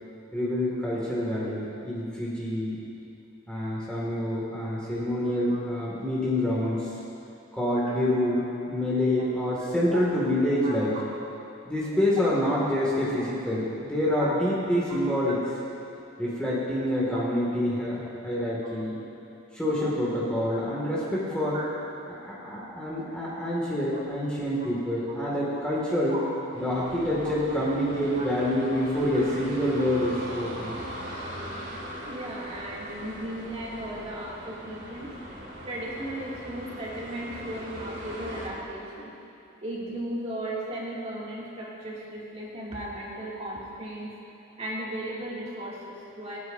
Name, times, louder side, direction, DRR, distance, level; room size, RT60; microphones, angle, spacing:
voice 1, 0.3-2.8 3.5-6.9 7.5-8.4 8.7-10.9 11.7-15.4 16.2-18.9 19.5-21.6 22.1-26.2 26.5-30.8, left 1 dB, 5° left, -7 dB, 2.1 m, -27 dB
voice 2, 10.6-11.0 12.2-12.3 12.9-13.0 14.1-14.3 14.9-15.0 17.1-17.2 19.8-19.9 20.5-20.7 21.5-21.7 23.9-24.0 24.6-24.7 25.1-25.2 26.1-26.3 27.2-27.3 28.1-28.2 29.1-29.2 32.1-35.1 35.7-39.2 39.6-44.2 44.6-46.4, right 1 dB, 30° right, -6 dB, 2.5 m, -36 dB
sound 1, 26.5-38.5, equal, 55° right, 2.6 m, -40 dB
27.5 x 9.5 x 2.7 m, 2.8 s
head